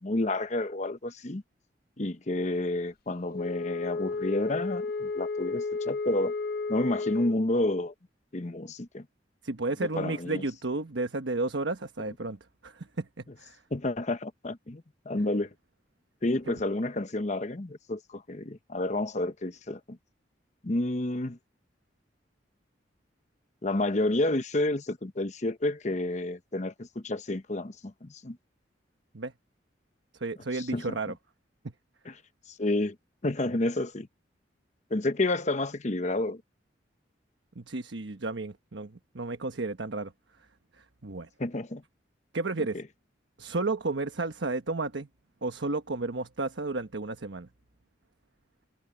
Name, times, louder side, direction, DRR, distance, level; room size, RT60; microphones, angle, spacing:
voice 1, 0.0-1.4 2.0-6.3 6.7-7.9 8.3-9.0 9.9-10.4 13.7-15.5 16.2-20.0 20.6-21.4 23.6-28.4 30.5-31.0 32.0-32.1 32.6-32.9 33.2-34.1 34.9-36.4 41.4-41.8 42.7-42.8, left 2 dB, 40° left, 1.0 m, -30 dB
Wind instrument woodwind instrument, 3.3-7.5, left 3 dB, 55° left, 0.7 m, -32 dB
voice 2, 9.4-13.1 13.4-13.6 16.5-16.6 29.1-29.3 30.2-31.1 31.6-31.7 37.6-40.1 41.0-41.3 42.3-42.8 43.4-45.1 45.4-47.5, right 3 dB, 80° right, 1.2 m, -32 dB
head